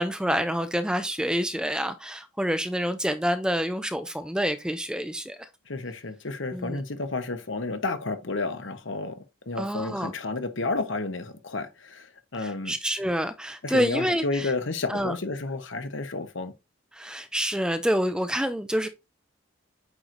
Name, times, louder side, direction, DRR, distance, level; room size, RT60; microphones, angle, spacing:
voice 1, 0.0-5.5 6.5-6.8 9.6-10.1 12.4-14.5 14.9-15.1 16.9-18.9, equal, 5° right, 0.5 m, -27 dB
voice 2, 5.7-12.7 13.6-16.5, left 3 dB, 65° left, 1.1 m, -31 dB
8.8 x 3.2 x 3.8 m
head